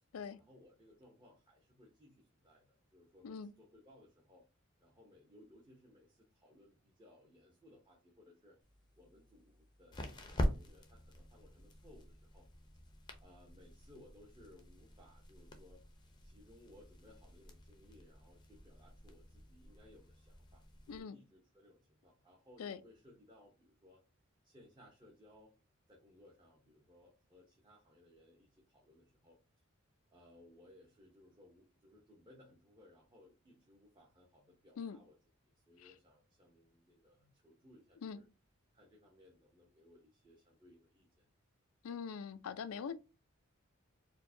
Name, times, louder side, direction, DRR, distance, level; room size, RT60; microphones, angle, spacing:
voice 1, 0.4-4.4 4.8-8.6 9.0-12.5 13.2-15.8 16.2-24.0 24.4-25.5 25.9-29.4 30.1-35.2 35.6-38.2 38.7-41.3, left 1 dB, 20° right, 0.7 m, -63 dB
sound 1, 8.6-21.0, equal, 20° left, 0.5 m, -45 dB
voice 2, 20.9-21.2 22.6-22.8 34.8-35.0 35.8-35.9 38.0-38.2 41.8-42.9, left 6 dB, 85° left, 0.4 m, -43 dB
4.4 x 2.1 x 2.6 m
head